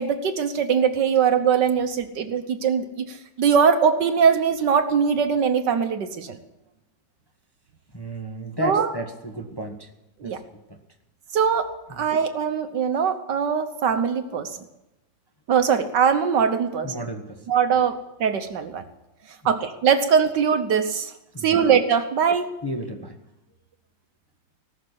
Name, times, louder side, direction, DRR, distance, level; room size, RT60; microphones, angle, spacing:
voice 1, 0.0-6.3 8.6-8.9 10.2-10.4 11.3-14.5 15.5-16.9 17.5-18.8 19.5-21.1 21.4-22.5, right 7 dB, 65° right, 8 dB, 1.5 m, -21 dB
voice 2, 7.9-9.9 10.2-10.4 10.7-10.8 11.9-12.1 16.8-17.5 17.7-17.8 19.2-19.6 21.3-21.6 22.6-23.1, equal, 15° left, 3 dB, 1.2 m, -33 dB
18.5 x 6.7 x 9.9 m, 0.93 s
omnidirectional pair, 2.2 m